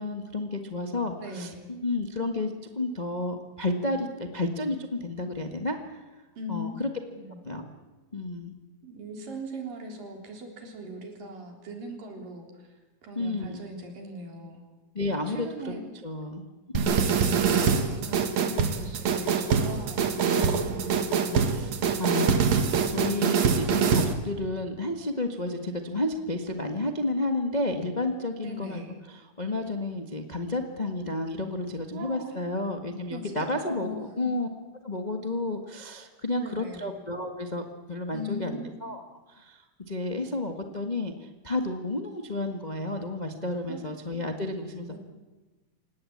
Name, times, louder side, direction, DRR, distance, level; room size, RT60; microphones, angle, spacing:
voice 1, 0.0-6.0 6.5-6.9 7.4-7.7 8.1-8.5 13.1-13.6 14.9-15.7 16.0-16.4 16.7-17.2 21.6-21.7 22.0-22.4 22.9-28.8 29.1-34.5 34.8-39.0 39.3-44.9, left 2 dB, 45° left, 5 dB, 0.5 m, -31 dB
voice 2, 1.2-1.6 6.4-6.8 7.1-7.4 8.8-12.7 13.0-14.6 15.3-15.8 17.0-20.8 21.2-22.3 28.4-29.0 31.9-32.4 33.1-33.3 33.6-34.3 36.4-36.9 38.1-38.7 43.7-43.9 44.9-45.0, equal, 80° right, 2 dB, 5.4 m, -40 dB
sound 1, 16.8-24.1, right 6 dB, 60° right, 2.8 m, -24 dB
28.0 x 17.0 x 8.7 m, 1.2 s
omnidirectional pair, 3.8 m